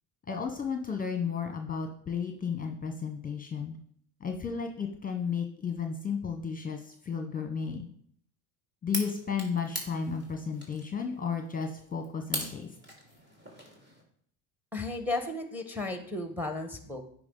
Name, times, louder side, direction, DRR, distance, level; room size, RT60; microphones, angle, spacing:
voice 1, 0.3-3.8 4.2-7.9 8.8-12.7, left 6 dB, 20° left, 5 dB, 1.0 m, -33 dB
sound 1, 8.9-14.0, right 1 dB, 25° right, 2.6 m, -41 dB
voice 2, 14.7-17.0, left 2 dB, 5° right, 6 dB, 1.1 m, -34 dB
9.4 x 4.9 x 3.8 m, 0.63 s
supercardioid pair, 105°, 42 cm